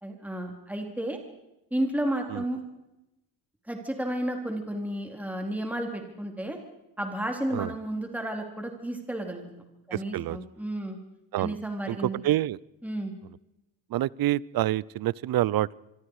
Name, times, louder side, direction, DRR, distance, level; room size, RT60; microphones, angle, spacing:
voice 1, 0.0-1.2 1.7-2.6 3.7-6.6 7.0-9.5 9.9-11.0 11.4-12.2 12.8-13.1, right 1 dB, 5° right, 3 dB, 3.9 m, -32 dB
voice 2, 9.9-10.4 11.3-11.6 11.9-12.6 13.9-15.8, right 14 dB, 50° right, 24 dB, 0.7 m, -27 dB
26.0 x 23.5 x 4.9 m, 0.92 s
cardioid pair, 90°, 45 cm